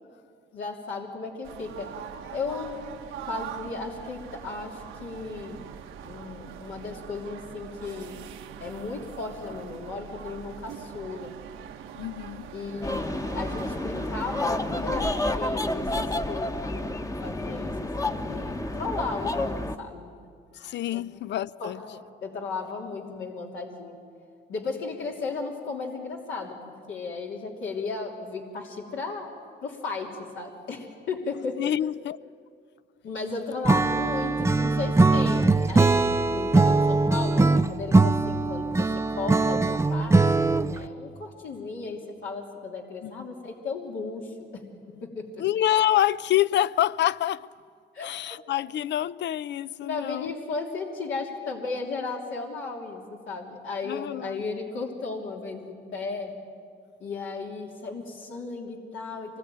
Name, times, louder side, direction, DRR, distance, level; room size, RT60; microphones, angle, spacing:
voice 1, 0.5-1.9 2.3-2.8 3.3-5.7 6.0-8.3 8.6-11.3 12.5-17.0 17.2-17.7 18.0-20.1 20.9-21.0 21.6-24.0 24.5-29.3 29.6-30.1 30.3-31.6 33.0-38.9 39.1-44.6 45.0-45.3 47.9-48.4 49.8-56.3 57.0-59.4, left 4 dB, 80° left, 3.1 m, -35 dB
sound 1, 1.4-15.3, right 9 dB, 85° right, 1.2 m, -42 dB
voice 2, 12.0-12.5 20.5-21.8 31.6-32.2 43.0-43.3 45.4-47.5 48.0-50.3 53.8-54.4, left 12 dB, 65° left, 0.5 m, -27 dB
sound 2, 12.8-19.8, left 1 dB, 15° left, 1.1 m, -30 dB
Acoustic guitar / Strum, 33.7-40.9, right 3 dB, 15° right, 0.6 m, -21 dB
25.0 x 20.0 x 9.2 m
cardioid pair, 90°, 20 cm